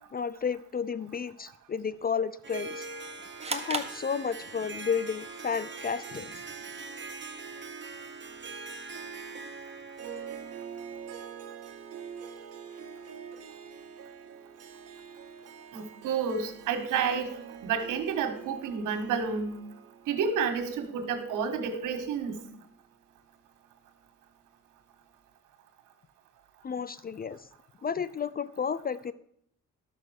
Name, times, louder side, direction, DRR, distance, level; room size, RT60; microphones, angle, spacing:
voice 1, 0.1-2.9 3.5-6.5 26.6-27.5 27.8-29.1, left 6 dB, 30° left, 17 dB, 0.4 m, -32 dB
Harp, 2.4-11.2, right 4 dB, 40° right, 1.4 m, -42 dB
sound 1, 3.4-4.8, right 3 dB, 20° right, 1.4 m, -36 dB
Harp 2, 9.9-22.5, right 7 dB, 55° right, 1.8 m, -46 dB
voice 2, 15.7-19.5 20.1-22.4, right 6 dB, 90° right, 7 dB, 1.8 m, -30 dB
12.5 x 6.5 x 6.5 m, 0.68 s
cardioid pair, 90°, 30 cm